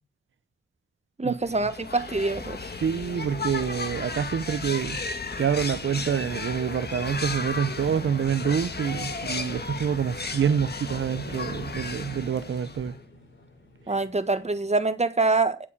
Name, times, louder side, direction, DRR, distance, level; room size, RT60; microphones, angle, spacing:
voice 1, 1.2-2.6 13.9-15.7, right 3 dB, 35° right, 1.4 m, -25 dB
sound 1, 1.4-13.0, left 3 dB, 55° left, 1.7 m, -34 dB
voice 2, 2.8-5.0 5.4-13.0, right 7 dB, 80° right, 0.7 m, -27 dB
sound 2, 7.8-14.9, left 1 dB, 70° left, 4.8 m, -49 dB
8.6 x 7.6 x 7.0 m
cardioid pair, 40°, 20 cm